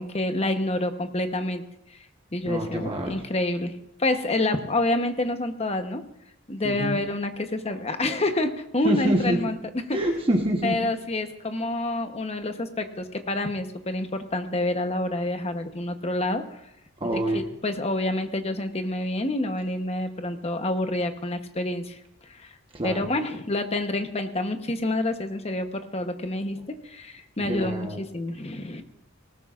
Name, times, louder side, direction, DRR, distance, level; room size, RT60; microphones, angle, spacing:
voice 1, 0.0-1.6 1.9-2.0 2.3-3.7 4.0-6.0 6.5-10.0 10.6-16.6 17.0-22.0 22.3-22.5 22.8-28.8, left 2 dB, 30° left, 7 dB, 1.0 m, -28 dB
voice 2, 2.4-3.2 6.6-7.0 8.8-9.4 9.9-10.7 17.0-17.4 22.7-23.1 27.4-28.0, right 1 dB, 25° right, 1 dB, 1.2 m, -26 dB
18.5 x 18.5 x 2.5 m, 0.84 s
head